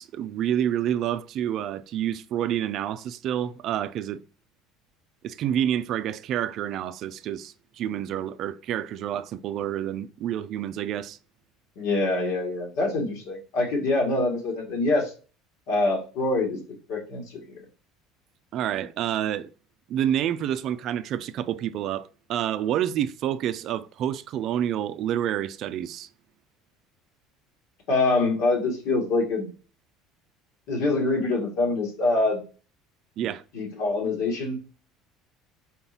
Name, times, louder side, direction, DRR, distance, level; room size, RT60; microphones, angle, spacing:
voice 1, 0.0-4.2 5.2-11.2 18.5-19.5 19.9-26.1 33.2-33.4, right 10 dB, 50° right, 0.4 m, -28 dB
voice 2, 11.8-15.1 15.7-16.6 16.9-17.6 27.9-29.5 30.7-32.4 33.5-34.6, left 2 dB, 75° left, 2.1 m, -25 dB
4.3 x 3.9 x 2.8 m
cardioid pair, 125°, 0 cm